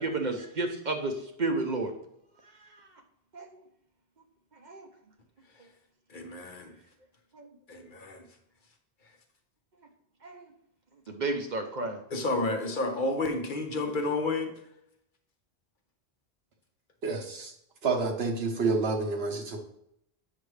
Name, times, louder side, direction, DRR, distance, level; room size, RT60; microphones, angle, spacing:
voice 1, 0.0-1.9 2.6-2.9 3.3-3.5 4.6-4.9 7.3-7.5 10.2-10.5 11.1-12.0, right 2 dB, 50° right, 4 dB, 0.8 m, -32 dB
voice 2, 6.1-6.7 7.7-8.2 12.1-14.5, left 2 dB, 50° left, 4 dB, 0.9 m, -30 dB
voice 3, 17.0-17.5 17.8-19.6, right 4 dB, 70° right, 2 dB, 1.2 m, -29 dB
8.5 x 5.9 x 3.2 m, 0.77 s
omnidirectional pair, 1.1 m